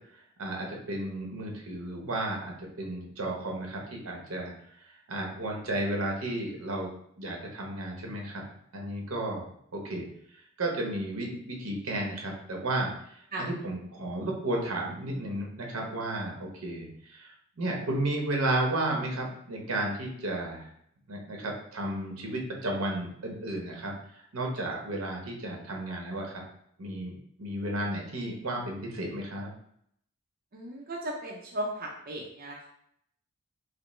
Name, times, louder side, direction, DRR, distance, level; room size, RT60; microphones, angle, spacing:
voice 1, 0.4-4.5 4.8-6.9 7.2-8.4 8.7-9.5 9.7-10.0 10.6-12.9 13.4-20.7 21.1-23.9 24.3-26.4 26.8-29.5, right 1 dB, 80° right, 0 dB, 0.9 m, -33 dB
voice 2, 30.5-32.7, right 1 dB, 45° right, -2 dB, 0.5 m, -36 dB
5.1 x 2.0 x 3.1 m, 0.70 s
head